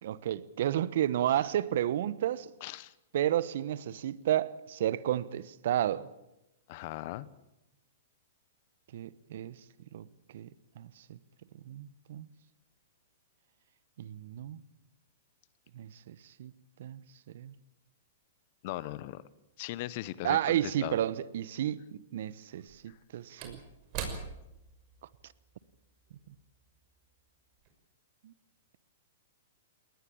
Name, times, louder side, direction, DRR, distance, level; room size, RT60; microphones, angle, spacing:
voice 1, 0.0-2.5 3.1-6.1 8.9-9.6 9.9-10.1 10.3-10.5 10.8-11.2 11.6-12.3 14.0-14.6 15.7-16.5 16.8-17.0 17.3-17.5 20.2-21.8 22.1-23.6 28.2-28.3, right 11 dB, 65° right, 1.0 m, -32 dB
voice 2, 2.6-2.9 6.7-7.3 18.6-19.2 19.6-21.0 22.9-23.0, left 16 dB, 50° left, 1.0 m, -39 dB
Slam / Wood, 22.5-27.2 27.5-27.7, right 6 dB, 45° right, 5.9 m, -44 dB
21.0 x 19.0 x 8.7 m
hypercardioid pair, 120°, 0 cm